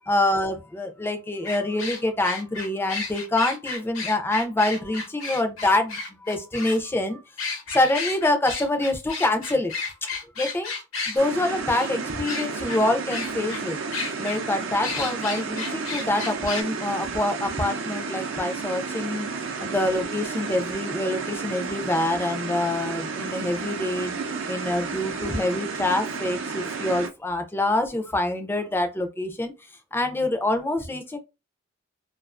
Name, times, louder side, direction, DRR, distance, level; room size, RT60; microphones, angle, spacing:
voice 1, 0.1-7.2 7.7-9.7 10.4-10.7 11.1-13.8 14.2-19.3 19.6-24.2 24.5-29.5 29.9-31.2, left 1 dB, 10° left, 0.4 m, -26 dB
sound 1, 1.5-6.8 7.4-11.2 11.7-11.9 12.3-12.8 13.1-13.6 13.9-14.4 14.8-16.6, left 4 dB, 75° left, 0.7 m, -32 dB
sound 2, 11.2-27.1, right 4 dB, 70° right, 0.5 m, -32 dB
2.4 x 2.3 x 2.4 m
head